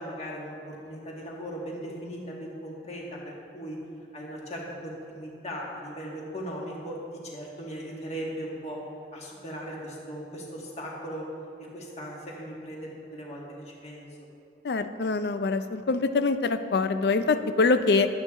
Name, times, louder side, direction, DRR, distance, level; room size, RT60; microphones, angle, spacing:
voice 1, 0.0-3.8 4.1-7.0 7.2-8.8 9.1-11.3 11.7-14.1, equal, 40° left, -3 dB, 1.7 m, -38 dB
voice 2, 14.6-18.1, left 3 dB, 65° left, 10 dB, 0.4 m, -24 dB
11.5 x 7.9 x 3.7 m, 2.8 s
head